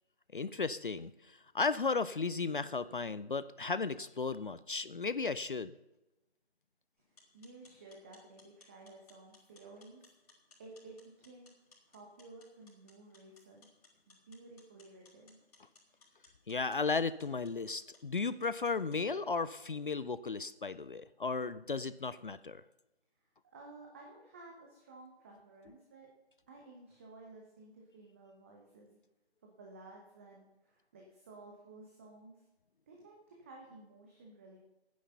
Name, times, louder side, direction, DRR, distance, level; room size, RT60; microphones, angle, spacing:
voice 1, 0.3-5.7 16.5-22.6, left 4 dB, 50° left, 15 dB, 0.5 m, -35 dB
sound 1, 7.0-19.0, left 3 dB, 35° left, 3.9 m, -65 dB
voice 2, 7.3-10.1 10.6-11.5 11.9-13.7 14.1-15.4 23.2-23.3 23.5-26.1 26.5-29.0 29.4-32.4 32.9-34.6, right 2 dB, 10° right, -1 dB, 0.9 m, -54 dB
11.0 x 9.5 x 6.8 m, 0.98 s
figure-of-eight pair, 150°, 33 cm